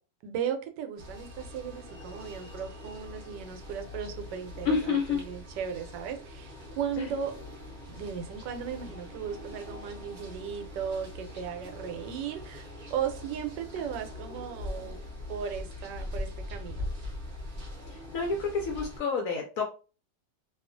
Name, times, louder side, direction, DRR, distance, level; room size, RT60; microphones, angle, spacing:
voice 1, 0.2-7.3 7.9-15.0 15.3-16.8, right 8 dB, 80° right, 1.2 m, -36 dB
sound 1, 1.0-19.0, left 1 dB, 45° right, 0.6 m, -42 dB
voice 2, 4.6-5.2 7.0-7.1 13.8-13.9 17.9-19.6, left 5 dB, 75° left, 0.8 m, -29 dB
2.7 x 2.3 x 2.5 m
omnidirectional pair, 1.9 m